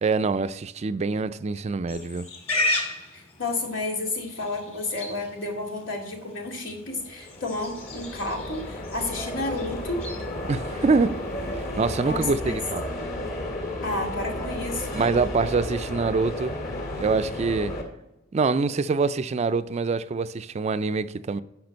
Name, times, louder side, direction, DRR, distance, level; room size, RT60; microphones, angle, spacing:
voice 1, 0.0-2.3 10.5-11.2 11.5-12.8 14.9-16.6 17.0-17.7 18.3-21.4, right 4 dB, 35° right, 0.4 m, -25 dB
Livestock farm animals working animals, 1.9-12.7, left 2 dB, 35° left, 2.1 m, -36 dB
voice 2, 3.1-10.0 12.0-12.6 13.8-15.0, left 2 dB, 85° left, 2.4 m, -31 dB
sound 1, 6.9-17.8, left 1 dB, 50° left, 2.1 m, -33 dB
10.5 x 5.8 x 5.2 m
head